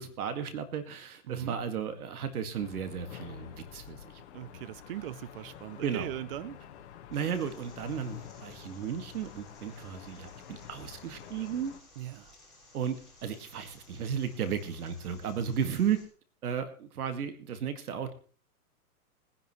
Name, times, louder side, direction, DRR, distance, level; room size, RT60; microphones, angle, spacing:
voice 1, 0.0-4.0 5.8-6.1 7.1-11.7 12.7-13.0 13.2-16.0 16.4-18.1, right 8 dB, 70° right, 9 dB, 2.2 m, -34 dB
voice 2, 1.2-1.6 4.3-6.6 12.0-12.3, right 14 dB, 40° right, 16 dB, 0.6 m, -39 dB
sound 1, 2.6-11.8, left 9 dB, 45° left, 1.7 m, -49 dB
sound 2, 7.1-16.1, left 1 dB, ahead, 7.0 m, -58 dB
21.0 x 10.5 x 3.2 m, 0.40 s
hypercardioid pair, 145°, 46 cm